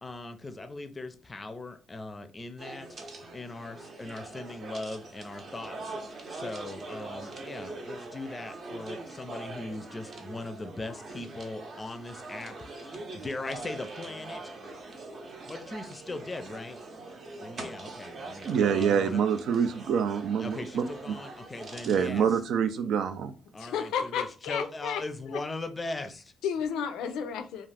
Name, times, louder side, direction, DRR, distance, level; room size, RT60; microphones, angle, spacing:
voice 1, 0.0-14.5 15.4-16.8 17.4-19.2 20.4-22.3 23.5-26.3, left 2 dB, 25° left, 8 dB, 0.4 m, -39 dB
sound 1, 2.6-22.1, right 2 dB, 50° right, 0.7 m, -43 dB
voice 2, 18.5-21.1 21.9-23.3, right 7 dB, 75° right, 10 dB, 0.3 m, -26 dB
voice 3, 23.6-25.4 26.4-27.7, left 7 dB, 90° left, 8 dB, 0.4 m, -32 dB
2.4 x 2.4 x 3.3 m, 0.36 s
cardioid pair, 90°, 0 cm